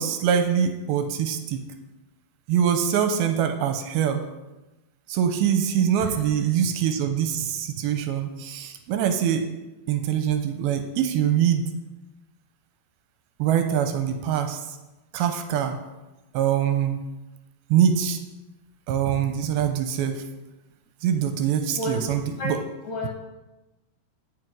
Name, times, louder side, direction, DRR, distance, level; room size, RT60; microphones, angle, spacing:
voice 1, 0.0-1.6 2.5-4.2 5.1-9.5 9.9-11.7 13.4-14.8 15.1-15.8 16.3-17.0 17.7-18.2 18.9-20.2 21.0-22.6 23.0-23.1, right 9 dB, 85° right, 7 dB, 2.4 m, -24 dB
voice 2, 6.0-6.2 21.8-22.1 22.4-22.5 22.8-23.1, left 1 dB, 75° left, -1 dB, 1.7 m, -30 dB
8.6 x 7.7 x 5.2 m, 1.1 s
omnidirectional pair, 4.6 m